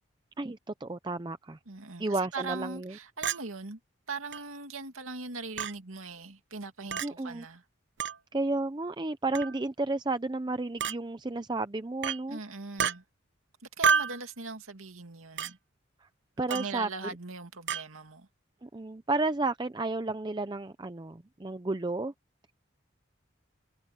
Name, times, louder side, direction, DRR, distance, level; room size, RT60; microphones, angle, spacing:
voice 1, 0.4-1.6 2.0-2.9 7.0-7.4 8.3-12.4 16.0-16.1 16.4-16.9 18.6-22.1, right 2 dB, 20° right, 0.5 m, -32 dB
voice 2, 1.7-3.8 4.1-7.6 12.3-13.0 13.8-15.6 16.5-18.3, right 4 dB, 90° right, 2.5 m, -40 dB
Chink clink, 3.2-3.4 4.3-4.4 5.6-5.7 6.9-7.1 8.0-8.2 9.3-9.6 10.8-11.0 12.0-12.2 12.8-13.0 13.8-14.2 15.4-15.5 16.5-16.7 17.7-17.8, right 7 dB, 55° right, 0.8 m, -28 dB
head